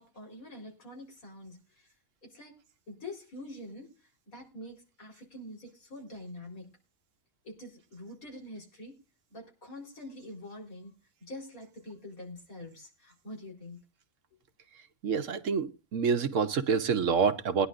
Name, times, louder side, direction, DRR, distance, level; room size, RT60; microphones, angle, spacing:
voice 1, 0.0-1.9 2.2-2.6 2.9-6.8 7.4-9.0 9.3-10.9 11.2-13.8, left 1 dB, 85° left, 4.5 m, -45 dB
voice 2, 15.0-17.7, right 6 dB, 65° right, 1.3 m, -27 dB
21.0 x 10.5 x 2.5 m
omnidirectional pair, 1.4 m